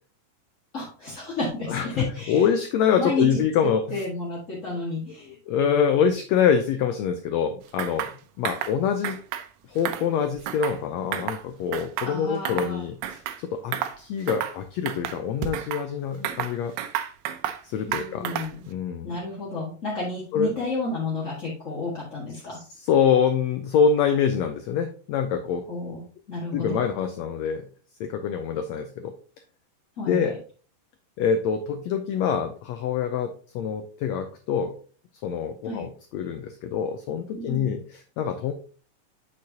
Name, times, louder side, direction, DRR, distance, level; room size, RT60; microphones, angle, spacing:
voice 1, 0.7-2.4 3.0-5.4 12.0-12.9 17.9-18.6 19.0-22.6 25.7-26.0 26.3-26.8 30.0-30.3 35.6-35.8 37.3-37.8, left 2 dB, 35° left, -6 dB, 1.4 m, -31 dB
voice 2, 1.7-4.0 5.3-8.1 8.4-9.2 9.7-16.7 17.6-18.3 18.7-19.2 20.3-20.5 22.8-25.6 26.5-27.7 28.0-29.1 30.1-30.4 31.2-34.7 35.2-37.8 38.2-38.5, left 7 dB, 90° left, 7 dB, 1.5 m, -25 dB
sound 1, 7.8-8.1 8.4-8.7 9.0-9.5 9.8-10.8 11.1-11.4 11.7-12.7 13.0-13.4 13.7-14.0 14.3-14.6 14.9-15.8 16.2-17.6 17.9-18.6, right 11 dB, 80° right, 2.3 m, -31 dB
8.4 x 6.5 x 2.8 m, 0.39 s
omnidirectional pair, 3.8 m